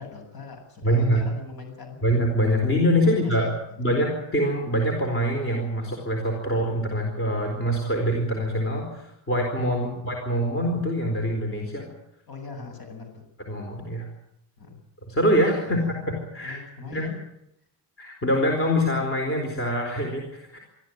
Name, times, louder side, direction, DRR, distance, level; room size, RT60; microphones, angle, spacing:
voice 1, 0.0-2.0 3.0-3.8 9.8-10.1 12.3-13.2 14.6-14.8 15.6-15.9 16.4-17.2, left 4 dB, 55° left, 4 dB, 7.7 m, -41 dB
voice 2, 0.8-1.2 2.0-3.5 3.8-11.9 13.5-14.1 15.1-16.0 16.3-16.6 16.9-17.1 18.0-20.6, equal, 30° left, 1 dB, 4.3 m, -24 dB
25.0 x 14.0 x 9.3 m, 0.80 s
cardioid pair, 180°, 43 cm